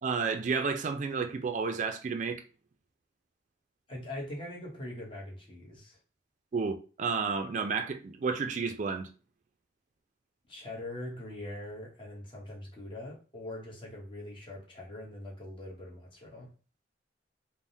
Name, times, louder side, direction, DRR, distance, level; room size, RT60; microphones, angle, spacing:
voice 1, 0.0-2.4 6.5-9.1, right 5 dB, 40° right, 0.3 m, -31 dB
voice 2, 3.9-6.0 10.5-16.5, left 1 dB, 30° left, 0.9 m, -42 dB
3.4 x 2.1 x 2.6 m
head